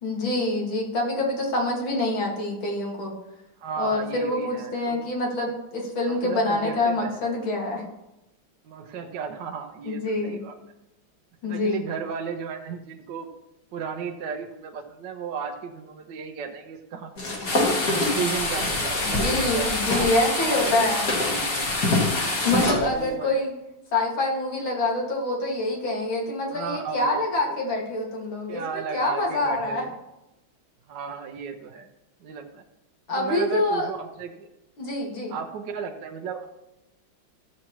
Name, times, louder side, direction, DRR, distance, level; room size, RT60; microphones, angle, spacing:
voice 1, 0.0-3.1 3.8-7.8 9.8-10.4 11.4-11.8 19.0-21.0 22.4-23.5 23.9-29.9 33.1-33.9 34.8-35.3, left 2 dB, 80° left, -1 dB, 2.8 m, -26 dB
voice 2, 3.6-5.0 6.1-7.2 8.6-10.6 11.4-13.3 13.7-17.1 17.9-20.7 21.3-21.7 22.6-23.3 26.5-27.6 28.5-29.9 30.9-31.9 32.2-32.6 33.1-34.5 35.3-36.5, right 6 dB, 65° right, 2 dB, 1.3 m, -34 dB
sound 1, 17.2-20.1 20.5-22.9, left 2 dB, 55° left, 2.4 m, -27 dB
sound 2, 17.4-22.7, left 2 dB, 35° left, 1.1 m, -27 dB
14.5 x 7.4 x 3.0 m, 0.93 s
omnidirectional pair, 2.2 m